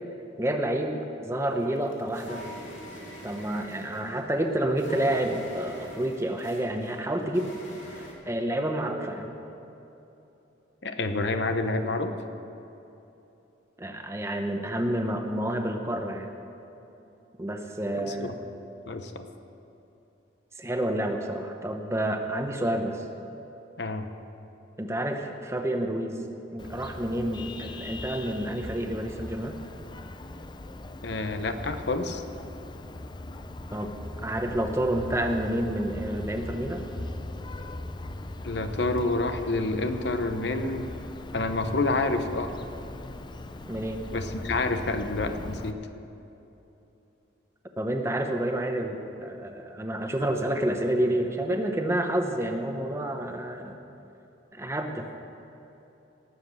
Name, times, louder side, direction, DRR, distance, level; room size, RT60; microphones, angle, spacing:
voice 1, 0.4-2.4 3.2-7.6 7.9-9.3 13.8-16.3 17.4-18.3 20.6-23.0 24.8-26.2 26.5-29.6 33.7-33.9 34.2-36.8 43.7-44.0 47.8-53.8 54.5-55.1, right 1 dB, 15° right, 4 dB, 0.8 m, -29 dB
sound 1, 1.4-8.1, equal, 90° left, 2.7 m, -44 dB
voice 2, 10.8-12.1 18.0-18.3 18.9-19.2 23.8-24.1 31.0-32.2 38.4-40.9 41.3-42.5 44.1-45.8, left 2 dB, 60° left, 8 dB, 0.8 m, -28 dB
Vehicle horn car horn honking, 26.6-45.7, left 2 dB, 25° left, 0.5 m, -40 dB
19.0 x 7.4 x 6.5 m, 3.0 s
head